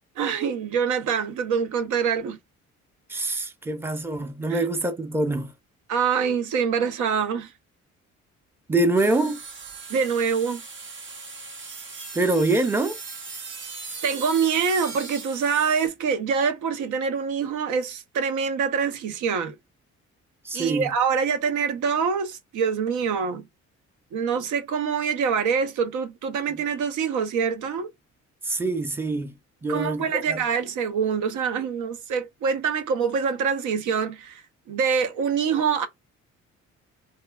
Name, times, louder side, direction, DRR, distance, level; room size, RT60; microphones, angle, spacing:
voice 1, 0.2-2.4 4.5-4.7 5.9-7.5 9.9-10.6 14.0-19.6 20.5-23.4 24.1-27.9 29.7-34.4 34.7-35.9, right 6 dB, 80° right, 0.6 m, -25 dB
voice 2, 3.1-5.5 8.7-9.4 12.1-13.0 20.4-20.9 28.4-29.4 29.6-30.4, right 2 dB, 10° right, 0.6 m, -25 dB
sound 1, 9.0-15.9, right 4 dB, 40° right, 0.8 m, -39 dB
3.1 x 2.5 x 2.2 m
cardioid pair, 90°, 30 cm